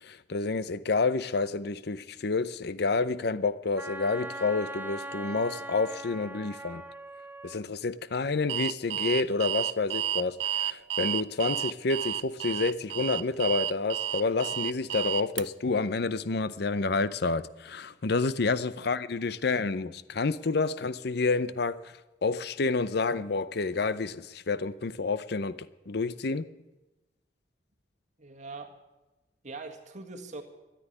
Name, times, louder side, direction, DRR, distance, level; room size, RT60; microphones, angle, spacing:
voice 1, 0.0-6.8 7.4-21.8 22.2-25.6 25.9-26.5, left 3 dB, 60° left, 0.6 m, -29 dB
Wind instrument woodwind instrument, 3.8-7.6, right 1 dB, 10° right, 0.6 m, -40 dB
Alarm, 8.5-15.4, right 11 dB, 80° right, 0.5 m, -31 dB
voice 2, 28.2-28.7 29.4-30.4, right 3 dB, 40° right, 1.9 m, -42 dB
13.5 x 10.0 x 9.8 m
head